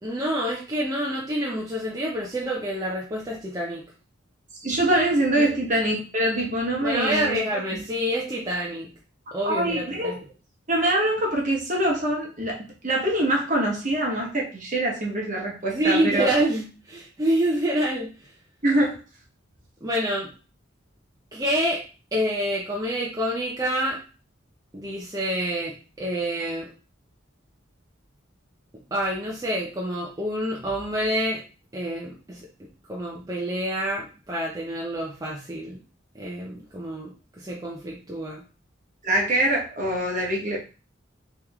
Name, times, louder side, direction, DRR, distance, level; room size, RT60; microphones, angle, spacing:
voice 1, 0.0-3.8 5.4-5.5 6.8-8.9 9.3-10.2 15.7-18.3 19.8-20.3 21.3-21.8 22.1-24.0 24.7-26.7 28.9-31.4 31.7-32.5 32.9-35.8 36.1-38.4, right 1 dB, 20° right, -4 dB, 0.7 m, -27 dB
voice 2, 4.6-7.4 7.7-7.8 9.4-10.2 10.7-16.4 18.6-19.0 39.0-40.6, right 1 dB, 40° right, -1 dB, 1.2 m, -24 dB
3.4 x 3.1 x 3.5 m, 0.34 s
head